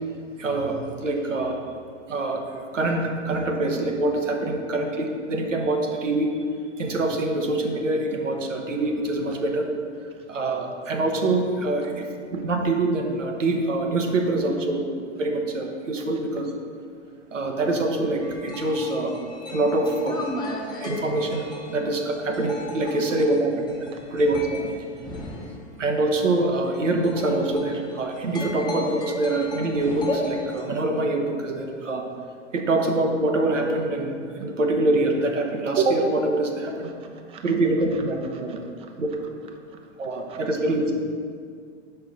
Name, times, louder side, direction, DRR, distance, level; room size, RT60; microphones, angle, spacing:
voice 1, 0.4-1.6 2.1-2.4 2.7-6.4 6.8-9.7 10.3-14.9 15.2-16.5 17.3-19.1 19.5-20.3 20.8-24.7 25.8-32.0 32.5-36.9 37.4-38.6 39.0-39.1 40.0-40.9, right 2 dB, 85° right, 2 dB, 0.9 m, -25 dB
sound 1, 18.2-25.6 26.4-30.8, left 2 dB, 10° left, 0.8 m, -35 dB
voice 2, 22.8-23.2 23.9-24.0 36.8-37.5 38.5-38.9 39.7-40.4, right 6 dB, 15° right, 4 dB, 0.4 m, -49 dB
4.8 x 4.6 x 5.4 m, 2.1 s
hypercardioid pair, 105°, 36 cm